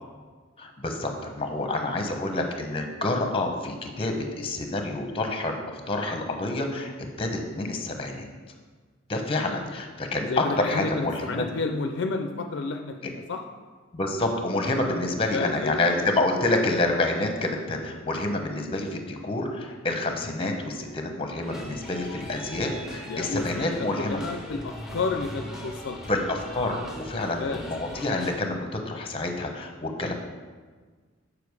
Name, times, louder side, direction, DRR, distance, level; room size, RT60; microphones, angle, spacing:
voice 1, 0.6-6.9 7.2-8.3 9.1-11.5 13.0-13.1 13.9-24.2 26.1-30.1, left 2 dB, 30° left, 4 dB, 0.8 m, -28 dB
voice 2, 10.1-13.4 14.8-15.8 22.9-26.0 27.1-27.6 27.9-28.1, left 3 dB, 65° left, 5 dB, 0.4 m, -31 dB
sound 1, 21.4-28.3, equal, ahead, 1.0 m, -40 dB
6.9 x 4.9 x 4.8 m, 1.5 s
head